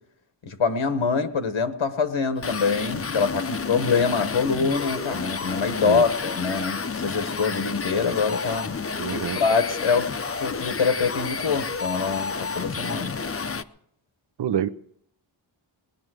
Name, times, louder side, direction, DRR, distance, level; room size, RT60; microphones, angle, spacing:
voice 1, 0.4-8.7 9.1-13.1, left 5 dB, 90° left, 8 dB, 1.4 m, -25 dB
sound 1, 2.4-13.6, left 5 dB, 30° left, 0.6 m, -30 dB
voice 2, 9.0-9.4 14.4-14.7, right 9 dB, 60° right, 13 dB, 0.6 m, -26 dB
19.0 x 10.5 x 6.3 m, 0.70 s
wide cardioid pair, 120°, 46 cm